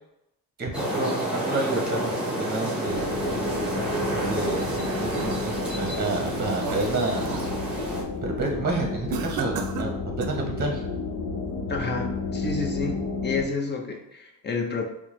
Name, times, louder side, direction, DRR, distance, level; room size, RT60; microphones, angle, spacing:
voice 1, 0.6-3.1 4.2-7.4 8.2-9.9 10.2-10.8, right 3 dB, 25° right, 1 dB, 0.8 m, -29 dB
sound 1, 0.7-8.0, right 1 dB, 5° right, 1.0 m, -30 dB
sound 2, 2.9-13.4, left 3 dB, 65° left, 0.8 m, -32 dB
sound 3, 4.5-5.7 6.2-7.5 7.9-8.2 9.1-10.5, right 6 dB, 85° right, 0.5 m, -35 dB
voice 2, 11.7-14.8, left 4 dB, 30° left, 2 dB, 0.7 m, -30 dB
4.4 x 2.2 x 3.1 m, 0.84 s
cardioid pair, 100°, 36 cm